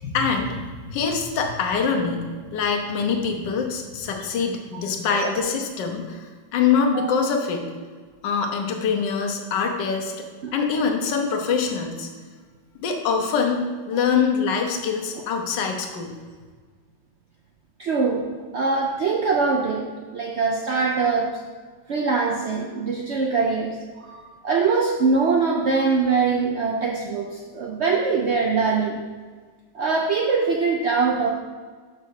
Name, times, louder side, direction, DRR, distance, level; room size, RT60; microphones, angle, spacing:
voice 1, 0.0-2.2 2.5-7.7 8.2-12.1 12.8-16.1, left 5 dB, 75° left, 3 dB, 1.5 m, -24 dB
voice 2, 17.8-18.3 18.5-21.4 21.9-29.0 29.7-31.3, right 4 dB, 85° right, 0 dB, 0.6 m, -23 dB
5.5 x 5.1 x 6.5 m, 1.5 s
omnidirectional pair, 2.0 m